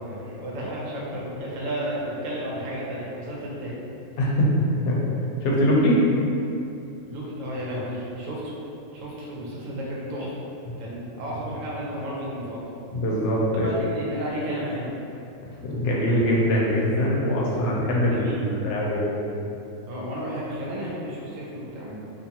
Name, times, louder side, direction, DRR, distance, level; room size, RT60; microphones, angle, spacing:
voice 1, 0.0-3.8 7.1-8.5 8.9-10.4 10.8-12.6 13.5-14.9 17.9-18.5 19.9-22.0, equal, 85° right, -5 dB, 1.0 m, -32 dB
voice 2, 4.2-4.5 4.8-5.0 5.4-6.0 12.9-13.7 15.6-19.2, equal, 70° left, -4 dB, 0.9 m, -22 dB
2.5 x 2.4 x 2.8 m, 2.8 s
omnidirectional pair, 1.3 m